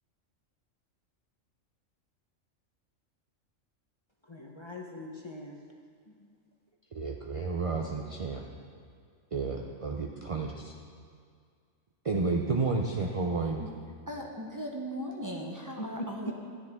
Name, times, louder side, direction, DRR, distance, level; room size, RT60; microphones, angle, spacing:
voice 1, 4.3-5.6 15.7-16.3, equal, 25° left, 0.7 m, -40 dB
voice 2, 6.9-8.4 9.3-10.7 12.0-13.6, right 3 dB, 50° right, 0.4 m, -31 dB
voice 3, 13.4-13.7 14.1-16.3, equal, 15° right, 0.8 m, -38 dB
13.5 x 9.6 x 3.6 m
omnidirectional pair, 1.4 m